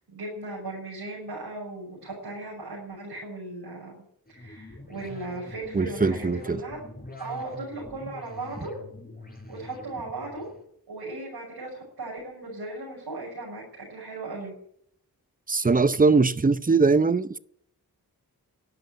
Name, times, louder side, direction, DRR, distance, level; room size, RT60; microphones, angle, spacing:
voice 1, 0.0-4.0 4.3-6.8 7.2-8.7 9.5-10.4 10.9-13.6 13.9-14.5, right 2 dB, 90° right, 6.6 m, -37 dB
sound 1, 4.3-10.6, left 2 dB, 25° left, 4.7 m, -44 dB
voice 2, 5.7-6.6 15.5-17.4, right 4 dB, 20° right, 0.7 m, -21 dB
12.0 x 11.0 x 9.2 m
cardioid pair, 55°, 38 cm